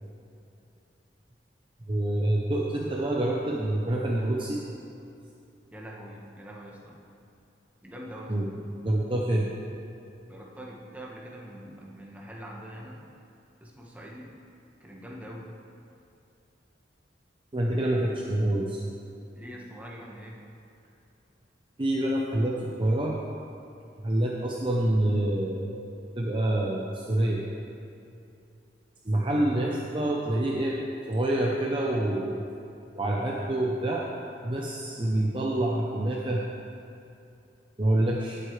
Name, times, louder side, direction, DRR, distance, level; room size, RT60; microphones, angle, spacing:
voice 1, 1.9-4.6 8.3-8.5 8.8-9.5 17.5-18.8 21.8-23.2 24.0-25.9 26.2-27.4 29.0-30.8 31.1-32.5 33.0-34.1 34.4-36.5 37.8-38.4, right 1 dB, 30° right, -2 dB, 0.7 m, -27 dB
voice 2, 5.7-7.0 7.8-8.3 10.3-13.0 13.6-14.3 14.8-15.5 19.3-20.4, equal, 10° right, -4 dB, 1.4 m, -43 dB
17.0 x 7.8 x 3.3 m, 2.6 s
head